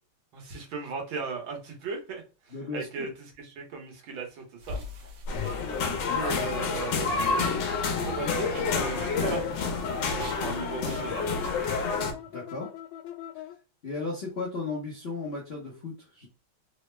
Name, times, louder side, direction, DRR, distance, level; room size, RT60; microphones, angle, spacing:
voice 1, 0.3-3.1 3.4-4.8 6.0-7.5 8.0-9.7 10.1-11.3, right 4 dB, 75° right, 1 dB, 1.7 m, -37 dB
voice 2, 2.5-3.1 5.8-6.2 12.3-12.7 13.8-16.3, left 3 dB, 55° left, -4 dB, 0.7 m, -35 dB
sound 1, 4.6-12.1, left 2 dB, 60° right, 1.0 m, -44 dB
sound 2, 5.3-13.6, left 11 dB, 90° left, 1.4 m, -43 dB
sound 3, 5.3-12.1, left 4 dB, 70° left, 1.4 m, -29 dB
3.9 x 2.0 x 3.2 m, 0.32 s
omnidirectional pair, 2.2 m